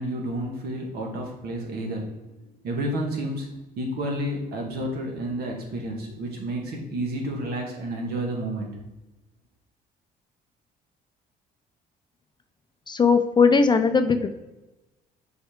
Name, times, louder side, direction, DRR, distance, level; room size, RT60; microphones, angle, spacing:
voice 1, 0.0-2.1 2.6-8.8, right 1 dB, 65° right, 0 dB, 1.8 m, -30 dB
voice 2, 12.9-14.3, left 5 dB, 25° left, 9 dB, 0.5 m, -19 dB
6.1 x 4.4 x 3.6 m, 1.1 s
cardioid pair, 110°, 17 cm